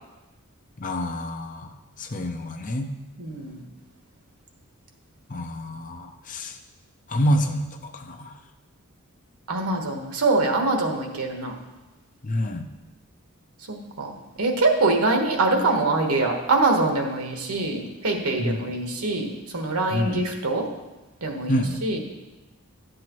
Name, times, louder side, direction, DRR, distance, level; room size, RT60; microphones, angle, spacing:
voice 1, 0.8-1.7 2.0-2.9 5.3-6.6 7.1-8.4 12.2-12.7 18.4-18.6 19.9-20.2 21.5-21.8, equal, 35° left, 5 dB, 0.6 m, -27 dB
voice 2, 3.2-3.6 9.5-11.5 13.7-14.1 14.4-19.3 19.5-20.6 21.2-22.0, right 2 dB, 90° right, 3 dB, 1.3 m, -24 dB
11.5 x 7.7 x 3.0 m, 1.1 s
head